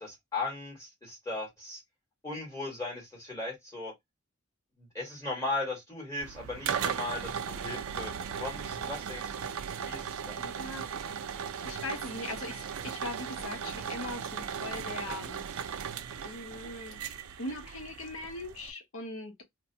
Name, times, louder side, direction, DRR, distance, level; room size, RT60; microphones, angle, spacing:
voice 1, 0.0-1.8 2.2-3.9 4.8-9.5 9.8-10.4, left 2 dB, 15° left, 1.5 m, -37 dB
sound 1, 6.2-18.7, right 7 dB, 80° right, 0.4 m, -37 dB
voice 2, 10.4-10.9 11.6-15.4 16.2-19.4, left 2 dB, 75° left, 0.8 m, -40 dB
2.6 x 2.2 x 2.7 m
head